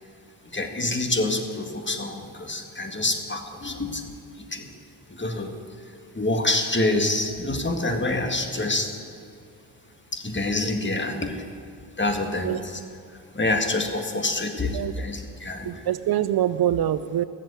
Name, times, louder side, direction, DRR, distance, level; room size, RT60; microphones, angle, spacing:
voice 1, 0.5-4.7 5.1-5.5 6.1-8.9 10.1-11.5 12.0-12.8 13.3-15.7, left 2 dB, 30° left, 5 dB, 1.9 m, -27 dB
voice 2, 15.6-17.2, right 11 dB, 65° right, 13 dB, 0.5 m, -24 dB
14.0 x 7.7 x 8.3 m, 2.3 s
supercardioid pair, 40°, 40 cm